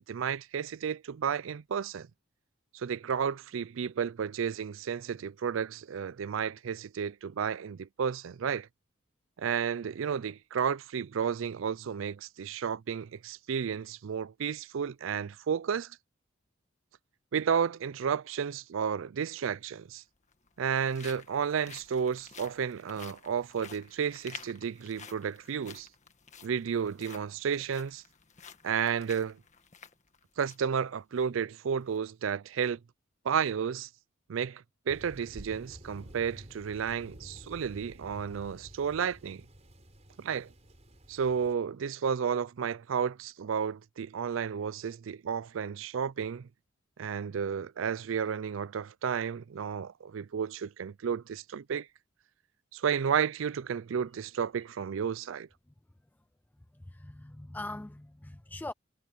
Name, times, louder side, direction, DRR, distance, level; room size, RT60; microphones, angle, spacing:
voice 1, 0.0-2.1 2.7-8.7 9.4-15.9 17.3-20.0 20.6-25.9 26.4-28.0 28.6-29.4 30.4-32.8 33.2-33.9 34.3-39.4 40.2-40.5 41.1-46.5 47.0-51.9 52.7-55.5, right 7 dB, 75° right, 0.4 m, -32 dB
sound 1, 19.1-19.2 20.2-30.7 31.1-31.2 31.7-32.0, left 6 dB, 35° left, 1.6 m, -51 dB
Thunder, 34.9-41.6, equal, 35° right, 4.5 m, -51 dB
voice 2, 56.7-58.7, left 2 dB, 10° left, 0.4 m, -42 dB
head